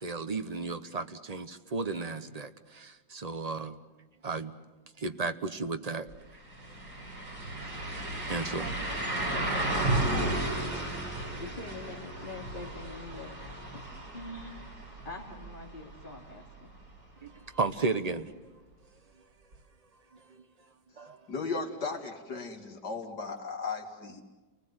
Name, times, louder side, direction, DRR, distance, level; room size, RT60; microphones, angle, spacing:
voice 1, 0.0-3.8 4.2-4.5 5.0-6.1 8.3-8.7 17.2-18.3 21.0-21.2, right 3 dB, 30° right, 9 dB, 0.7 m, -34 dB
sound 1, 6.1-6.2 6.5-16.3 16.7-16.8 19.5-19.6, right 1 dB, 75° right, 5.4 m, -34 dB
voice 2, 8.6-9.7 10.1-10.5 11.4-13.4 13.7-14.7 15.0-16.7, left 2 dB, 30° left, 0 dB, 3.0 m, -44 dB
voice 3, 21.3-24.2, left 4 dB, 75° left, 3 dB, 3.0 m, -36 dB
29.5 x 20.0 x 8.0 m, 1.2 s
omnidirectional pair, 1.8 m